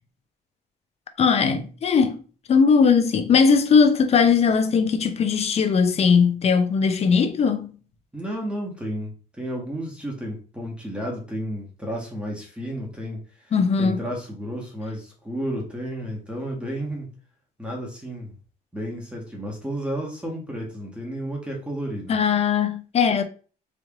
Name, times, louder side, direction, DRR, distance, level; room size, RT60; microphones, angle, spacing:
voice 1, 1.2-2.2 2.5-7.7 13.5-14.0 22.1-23.2, left 5 dB, 40° left, 0.6 m, -19 dB
voice 2, 8.1-13.5 13.8-17.1 17.6-18.4 18.7-22.1, equal, 5° right, 1.3 m, -32 dB
3.4 x 3.1 x 3.5 m
cardioid pair, 110°, 17 cm